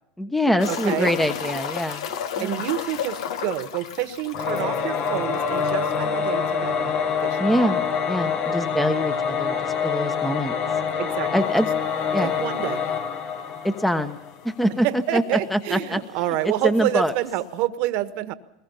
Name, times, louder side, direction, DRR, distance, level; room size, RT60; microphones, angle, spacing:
voice 1, 0.2-2.1 2.4-2.6 7.4-10.5 11.3-11.7 12.1-12.3 13.6-14.2 14.4-15.2 15.5-16.0 16.6-17.1, equal, 5° left, 8 dB, 1.2 m, -24 dB
sound 1, 0.6-6.0 6.3-6.4 6.7-6.8 9.6-9.7 11.4-11.5 12.2-12.3 12.6-12.7 13.6-13.7 13.8-14.4 15.4-15.5, left 8 dB, 70° left, 1.4 m, -32 dB
voice 2, 0.7-1.2 2.4-7.0 7.2-7.5 11.0-11.5 12.2-12.9 14.8-18.3, right 14 dB, 55° right, 11 dB, 1.4 m, -28 dB
Singing / Musical instrument, 4.3-14.4, left 6 dB, 45° left, 1.6 m, -26 dB
22.0 x 21.0 x 5.7 m, 0.94 s
hypercardioid pair, 105°, 3 cm